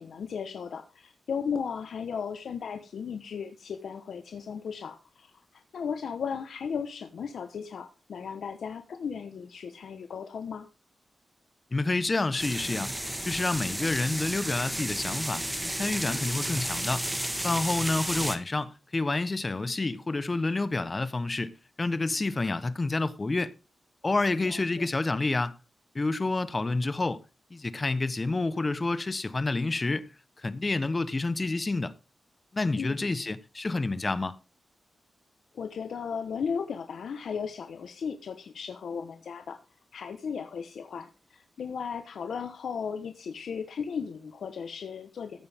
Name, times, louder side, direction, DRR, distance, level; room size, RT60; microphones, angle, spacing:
voice 1, 0.0-5.3 5.7-10.7 24.4-24.9 32.8-33.1 35.5-39.6 39.9-45.5, left 6 dB, 75° left, 1.1 m, -36 dB
voice 2, 11.7-12.9 13.2-15.4 15.7-17.0 17.4-21.5 21.8-23.5 24.0-25.6 25.9-27.2 27.5-30.1 30.4-31.9 32.5-34.3, left 3 dB, 25° left, 1.0 m, -28 dB
sound 1, 12.4-18.4, right 1 dB, 10° right, 1.4 m, -32 dB
14.5 x 8.9 x 3.6 m
wide cardioid pair, 115°, 0 cm